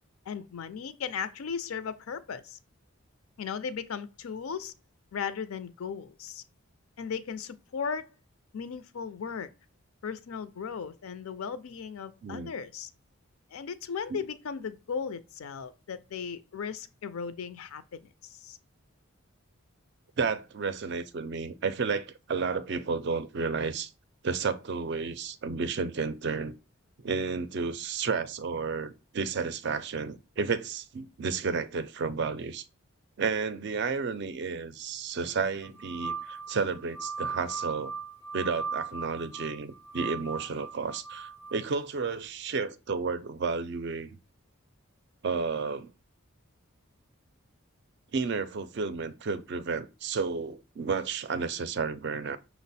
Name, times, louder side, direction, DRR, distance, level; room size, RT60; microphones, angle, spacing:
voice 1, 0.3-2.6 3.4-4.7 5.1-6.4 7.0-8.1 8.5-9.5 10.0-12.9 13.5-18.6, left 6 dB, 80° left, 0.4 m, -36 dB
voice 2, 12.2-12.5 14.1-14.2 20.2-23.9 24.2-26.6 27.0-32.7 33.2-37.9 38.3-44.1 45.2-45.9 48.1-52.4, right 5 dB, 50° right, 0.4 m, -32 dB
sound 1, 35.6-41.6, right 5 dB, 10° left, 0.4 m, -38 dB
5.8 x 2.0 x 4.0 m
head